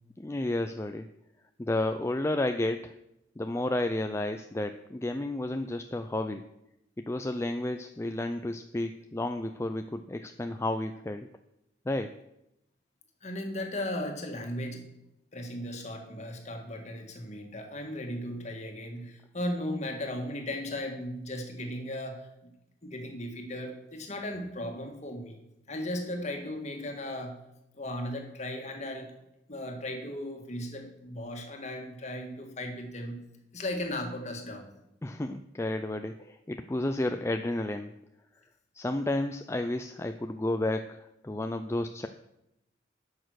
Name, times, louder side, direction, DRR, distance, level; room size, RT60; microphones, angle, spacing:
voice 1, 0.2-1.1 1.6-2.9 3.4-6.4 7.0-11.3 11.9-12.1 35.0-37.9 38.7-42.1, left 1 dB, 15° left, 7 dB, 0.4 m, -31 dB
voice 2, 13.2-14.8 15.3-22.3 22.8-25.4 25.7-27.4 27.7-29.1 29.5-33.2 33.5-34.7, left 1 dB, 40° left, 4 dB, 1.8 m, -36 dB
11.0 x 6.5 x 6.3 m, 0.85 s
head